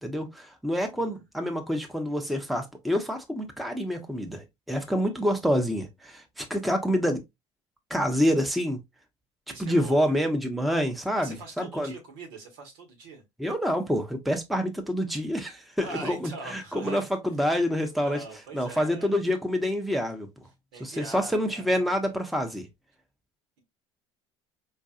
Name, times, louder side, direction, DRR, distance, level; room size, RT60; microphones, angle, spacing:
voice 1, 0.0-7.2 7.9-8.8 9.6-11.9 13.4-18.2 18.5-20.3 20.8-22.7, equal, ahead, 0.8 m, -27 dB
voice 2, 0.9-1.2 5.0-5.1 9.5-10.2 11.1-13.2 15.8-17.1 17.8-19.2 20.7-21.7, right 3 dB, 70° right, 1.4 m, -43 dB
4.6 x 2.5 x 2.4 m
hypercardioid pair, 65°, 15 cm